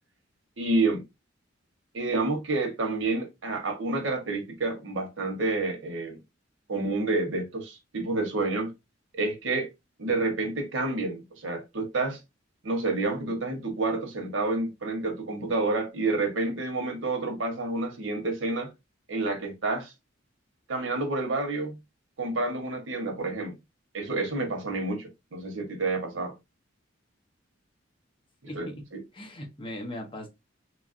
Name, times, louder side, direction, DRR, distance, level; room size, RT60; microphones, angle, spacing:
voice 1, 0.6-1.0 1.9-6.2 6.7-8.7 9.1-9.7 10.0-12.2 12.6-18.7 19.1-19.9 20.7-21.8 22.2-23.5 23.9-26.3 28.5-28.7, right 3 dB, 90° right, 0.9 m, -29 dB
voice 2, 28.5-30.3, left 1 dB, 25° left, 0.7 m, -39 dB
3.1 x 2.3 x 2.4 m
head